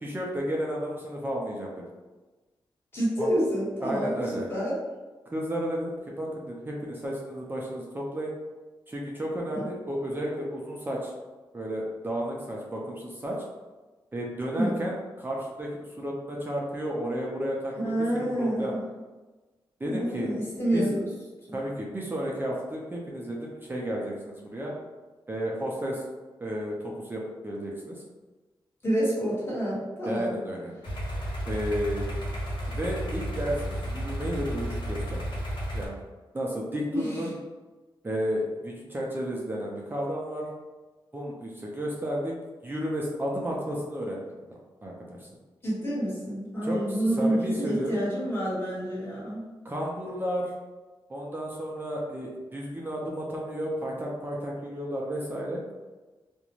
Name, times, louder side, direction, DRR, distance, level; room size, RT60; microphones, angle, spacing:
voice 1, 0.0-1.7 3.2-3.3 3.8-4.4 5.3-8.3 8.9-11.1 11.5-13.4 14.1-17.9 18.4-18.7 19.8-20.3 20.7-20.8 21.5-24.7 25.3-26.0 26.4-28.0 30.1-30.7 31.5-32.1 32.7-35.2 35.7-36.0 36.3-37.3 38.0-40.5 41.1-42.3 42.6-45.3 46.6-48.0 49.6-50.5 51.1-55.6, equal, 25° right, -3 dB, 0.5 m, -32 dB
voice 2, 2.9-4.7 9.5-9.6 14.5-14.8 17.8-18.8 19.8-21.1 21.5-21.6 28.8-30.3 36.9-37.3 45.6-49.4, equal, 25° left, -8 dB, 1.3 m, -28 dB
sound 1, 30.8-35.9, equal, 65° left, 0.7 m, -32 dB
2.4 x 2.1 x 3.0 m, 1.2 s
wide cardioid pair, 95°, 9 cm